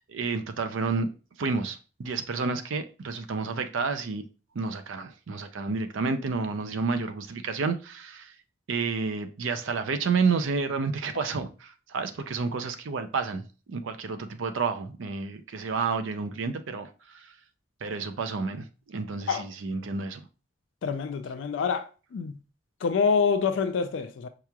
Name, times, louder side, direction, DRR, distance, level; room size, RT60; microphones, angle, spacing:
voice 1, 0.1-1.1 1.4-4.3 4.5-8.3 8.7-13.4 13.7-17.3 17.8-20.2, right 4 dB, 90° right, 0.5 m, -30 dB
voice 2, 20.8-22.4 22.8-24.3, left 5 dB, 80° left, 0.3 m, -26 dB
4.7 x 2.9 x 2.3 m
head